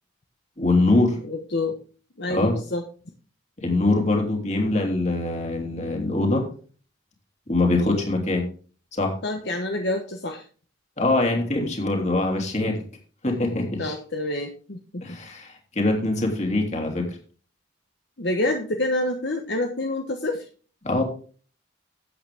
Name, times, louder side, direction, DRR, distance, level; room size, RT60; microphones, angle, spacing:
voice 1, 0.6-1.2 2.3-2.5 3.6-6.5 7.5-8.4 8.9-9.2 11.0-12.8 13.2-13.9 15.0-17.2 20.8-21.0, left 2 dB, 35° left, 2 dB, 3.1 m, -23 dB
voice 2, 1.2-1.8 2.2-2.8 7.8-8.0 9.2-10.4 13.8-15.2 18.2-20.4, left 2 dB, 55° left, 3 dB, 1.2 m, -27 dB
13.0 x 8.9 x 3.6 m, 0.40 s
head